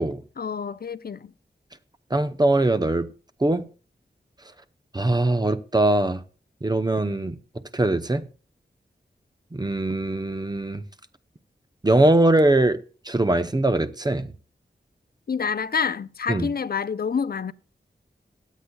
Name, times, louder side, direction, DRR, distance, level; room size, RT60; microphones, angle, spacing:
voice 1, 0.4-1.3 15.3-17.5, left 6 dB, 55° left, 0.5 m, -27 dB
voice 2, 2.1-3.1 3.4-3.6 4.9-6.2 6.6-7.4 7.7-8.3 9.5-10.8 11.8-12.8 13.1-14.3 16.3-16.5, right 2 dB, 20° right, 0.7 m, -21 dB
23.0 x 8.3 x 2.3 m
wide cardioid pair, 90°, 18 cm